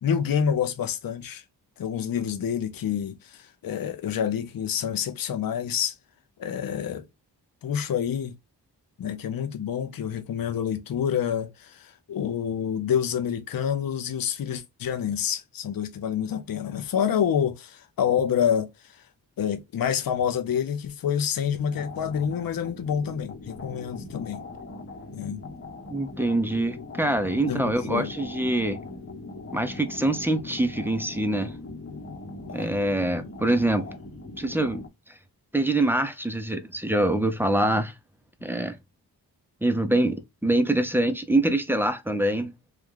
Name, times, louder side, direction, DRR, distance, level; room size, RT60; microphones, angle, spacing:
voice 1, 0.0-1.4 1.8-6.0 6.4-7.1 7.6-8.3 9.0-19.0 19.4-24.4 25.1-25.4 27.5-28.1, left 8 dB, 60° left, 0.7 m, -27 dB
sound 1, 21.7-34.9, left 2 dB, 35° left, 1.0 m, -40 dB
voice 2, 25.9-28.8 29.5-31.5 32.5-33.9 34.4-34.8 35.5-37.9 38.4-38.8 39.6-42.5, right 1 dB, 5° right, 0.6 m, -24 dB
3.1 x 2.3 x 3.7 m
cardioid pair, 75°, 40 cm